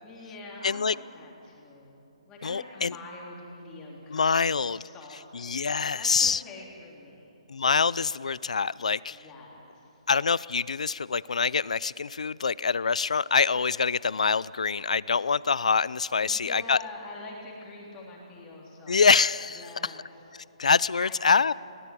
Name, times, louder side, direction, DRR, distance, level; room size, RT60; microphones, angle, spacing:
voice 1, 0.0-5.7 5.9-7.3 9.1-9.9 16.2-19.0 19.5-20.1 20.5-20.6 21.0-21.5, left 2 dB, 15° left, -2 dB, 3.3 m, -45 dB
voice 2, 0.6-1.0 2.4-2.9 4.1-4.8 5.3-6.4 7.5-9.2 10.1-16.8 18.9-19.9 20.6-21.5, left 5 dB, 85° left, 21 dB, 0.5 m, -25 dB
22.0 x 18.5 x 8.5 m, 2.9 s
hypercardioid pair, 165°, 4 cm